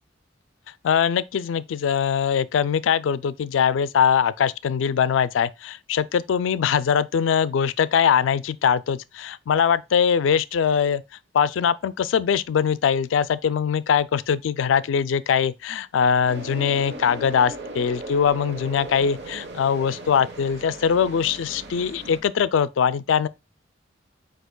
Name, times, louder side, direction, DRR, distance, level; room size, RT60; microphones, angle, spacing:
voice 1, 0.8-11.0 11.3-23.3, left 7 dB, 85° left, 0.3 m, -22 dB
sound 1, 16.3-22.2, right 1 dB, 60° right, 0.9 m, -37 dB
8.0 x 2.8 x 2.2 m
head